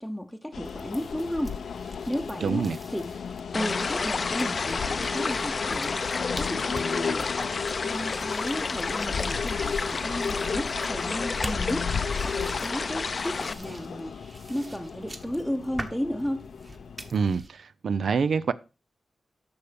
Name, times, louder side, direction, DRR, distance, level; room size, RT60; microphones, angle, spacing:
voice 1, 0.0-2.6 2.9-3.2 3.5-6.0 6.4-7.3 7.8-14.2 14.5-16.5, equal, ahead, 0.8 m, -33 dB
sound 1, 0.5-17.1, left 6 dB, 85° left, 0.7 m, -35 dB
sound 2, 0.6-17.5, right 2 dB, 25° right, 1.3 m, -45 dB
voice 2, 2.4-2.8 17.1-18.5, right 5 dB, 75° right, 0.5 m, -26 dB
sound 3, 3.5-13.5, left 4 dB, 40° left, 0.6 m, -31 dB
11.0 x 6.9 x 5.1 m
wide cardioid pair, 165°, 0 cm